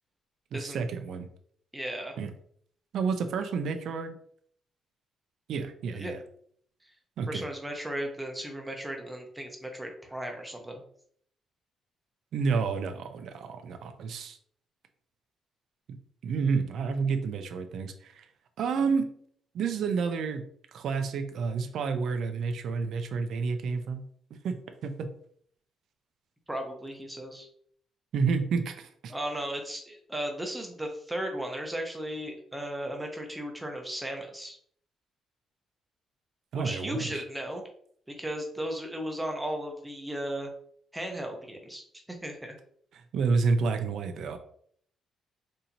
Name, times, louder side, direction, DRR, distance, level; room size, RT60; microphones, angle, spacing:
voice 1, 0.5-1.3 2.2-2.3 2.9-4.2 5.5-6.2 7.2-7.5 12.3-14.4 15.9-16.0 16.2-18.3 18.6-19.1 19.5-20.4 20.7-24.0 24.4-24.6 24.8-25.1 28.1-29.1 36.5-37.2 42.9-44.4, right 5 dB, 65° right, 7 dB, 0.4 m, -30 dB
voice 2, 1.7-2.2 5.9-6.1 7.3-10.8 26.5-27.5 29.1-34.6 36.5-37.6 38.1-40.5 40.9-41.8 42.2-42.6, right 1 dB, 10° right, 2 dB, 0.7 m, -35 dB
4.3 x 2.7 x 2.7 m, 0.62 s
cardioid pair, 125°, 0 cm